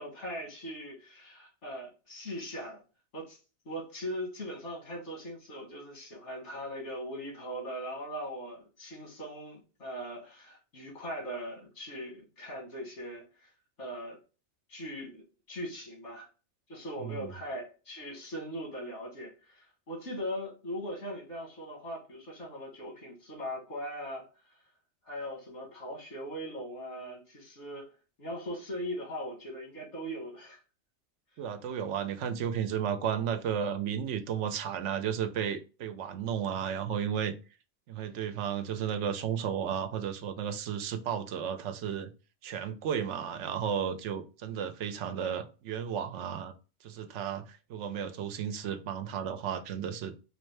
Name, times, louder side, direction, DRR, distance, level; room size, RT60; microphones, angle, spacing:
voice 1, 0.0-2.8 3.1-3.4 3.7-13.5 13.8-14.2 14.7-16.3 16.7-24.6 25.0-27.9 28.2-30.6 40.7-40.9, equal, 85° left, 2.0 m, -40 dB
voice 2, 17.0-17.3 31.4-37.3 37.9-42.1 42.4-46.5 46.8-50.2, right 8 dB, 90° right, 0.9 m, -33 dB
4.2 x 2.7 x 3.2 m
omnidirectional pair, 1.2 m